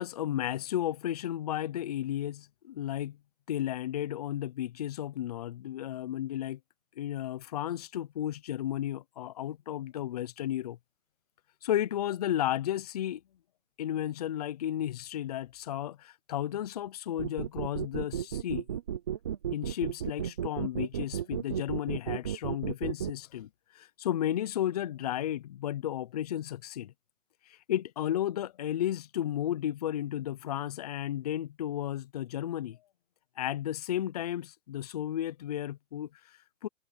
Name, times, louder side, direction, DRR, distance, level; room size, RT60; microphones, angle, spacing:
voice 1, 0.0-3.2 3.5-6.6 7.0-10.8 11.6-13.2 13.8-18.6 19.5-26.9 27.5-32.8 33.4-36.7, left 12 dB, 30° left, 0.6 m, -33 dB
sound 1, 17.2-23.1, right 9 dB, 20° right, 0.5 m, -33 dB
hypercardioid pair, 155°, 39 cm